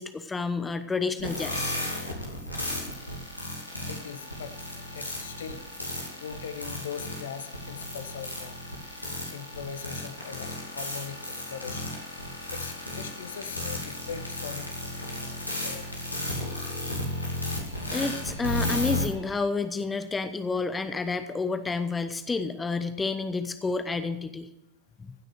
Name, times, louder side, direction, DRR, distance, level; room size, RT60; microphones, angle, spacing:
voice 1, 0.0-1.8 17.9-24.5 25.0-25.1, left 4 dB, 15° left, 10 dB, 0.8 m, -30 dB
sound 1, 1.2-19.1, left 1 dB, 85° left, 2.5 m, -34 dB
sound 2, 3.7-19.5, equal, 80° right, 4.3 m, -53 dB
voice 2, 3.9-5.6 6.2-8.6 9.3-11.9 12.5-14.7 15.2-15.8, left 7 dB, 65° left, 10 dB, 1.1 m, -40 dB
16.0 x 6.5 x 7.7 m, 0.89 s
figure-of-eight pair, 90°, 0 cm